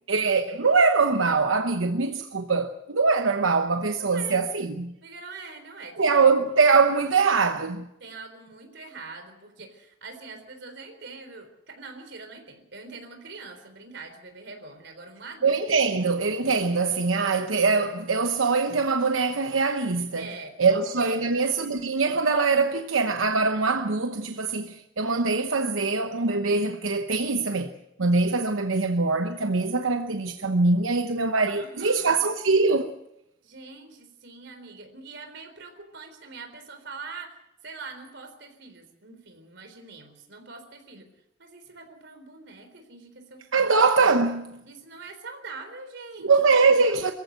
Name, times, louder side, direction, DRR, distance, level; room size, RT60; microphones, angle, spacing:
voice 1, 0.1-4.9 6.0-7.9 15.4-20.2 20.6-27.7 28.0-32.9 43.5-44.6 46.2-47.1, right 4 dB, 90° right, 1.0 m, -23 dB
voice 2, 4.0-4.5 5.0-6.3 8.0-15.9 20.2-21.3 31.5-32.2 33.4-37.4 37.6-41.1 41.4-43.8 44.7-46.3 46.9-47.1, right 3 dB, 60° right, 4.0 m, -43 dB
22.5 x 15.0 x 8.1 m
head